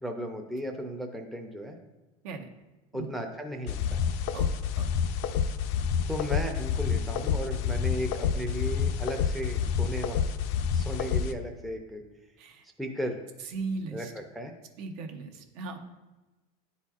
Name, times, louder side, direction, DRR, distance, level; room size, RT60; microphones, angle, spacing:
voice 1, 0.0-1.8 2.9-4.0 6.1-10.3 10.7-12.0 12.8-13.2 13.9-14.5, equal, ahead, 2 dB, 0.5 m, -35 dB
sound 1, 3.7-11.3, left 7 dB, 60° left, 0.4 m, -28 dB
voice 2, 13.4-14.1 14.8-15.8, right 4 dB, 70° right, 5 dB, 0.8 m, -37 dB
10.0 x 4.2 x 2.4 m, 1.1 s
supercardioid pair, 130°, 19 cm